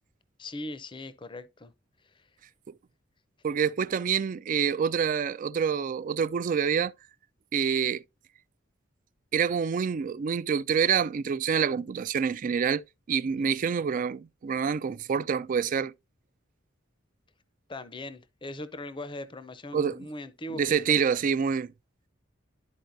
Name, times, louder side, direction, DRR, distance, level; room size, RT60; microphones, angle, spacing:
voice 1, 0.4-1.7 2.1-2.2 13.3-13.5 17.7-21.2, left 1 dB, 25° left, 0.6 m, -40 dB
voice 2, 3.4-6.9 7.5-8.0 9.3-12.8 13.1-15.9 19.7-20.0 20.5-21.7, right 7 dB, 40° right, 0.3 m, -27 dB
11.5 x 4.4 x 2.6 m
head